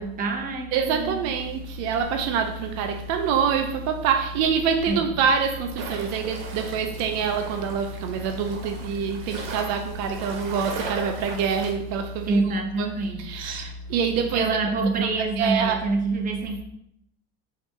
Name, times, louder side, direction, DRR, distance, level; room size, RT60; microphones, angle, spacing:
voice 1, 0.0-1.2 4.9-5.1 12.3-13.7 14.3-16.6, right 3 dB, 30° right, 0.6 m, -26 dB
voice 2, 0.7-14.6 15.0-15.1 15.4-15.8, right 6 dB, 65° right, 0.5 m, -26 dB
sound 1, 5.8-11.7, right 4 dB, 85° right, 1.0 m, -38 dB
4.0 x 2.8 x 3.4 m
supercardioid pair, 120°, 29 cm